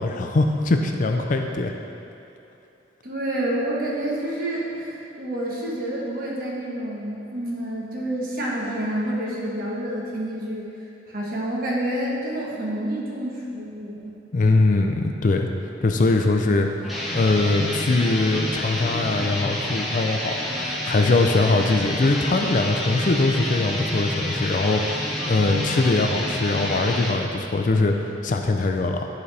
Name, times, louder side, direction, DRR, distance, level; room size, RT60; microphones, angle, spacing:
voice 1, 0.0-1.7 14.3-15.5 15.8-16.7 17.1-29.1, left 3 dB, 45° left, 4 dB, 0.4 m, -22 dB
voice 2, 3.0-10.7 11.1-14.1, right 1 dB, 50° right, -4 dB, 1.2 m, -28 dB
sound 1, 16.8-27.2, left 1 dB, ahead, 0.8 m, -28 dB
11.0 x 4.0 x 3.3 m, 2.9 s
head